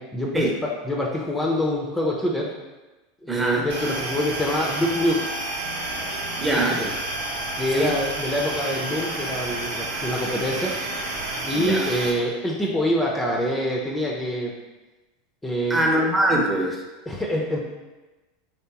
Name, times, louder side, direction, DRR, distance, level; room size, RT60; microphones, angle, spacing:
voice 1, 0.0-2.5 3.2-5.3 6.5-6.9 7.6-10.7 11.5-14.5 15.4-15.8 17.1-17.6, equal, 10° left, -2 dB, 0.6 m, -25 dB
voice 2, 3.3-3.7 6.4-6.8 7.7-7.9 11.5-11.9 15.7-16.8, right 1 dB, 15° right, -1 dB, 0.9 m, -22 dB
sound 1, 3.7-12.1, right 2 dB, 75° right, 0.8 m, -30 dB
4.4 x 3.2 x 2.9 m, 1.1 s
hypercardioid pair, 85°, 0 cm